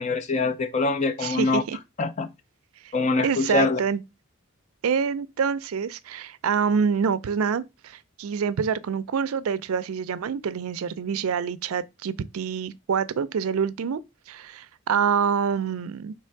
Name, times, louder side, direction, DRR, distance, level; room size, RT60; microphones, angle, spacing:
voice 1, 0.0-1.6 2.0-2.3 2.9-3.8, left 3 dB, 30° left, 0.4 m, -24 dB
voice 2, 1.2-1.8 3.2-4.0 4.8-14.0 14.3-16.1, right 6 dB, 75° right, 0.4 m, -26 dB
3.4 x 3.2 x 4.5 m
head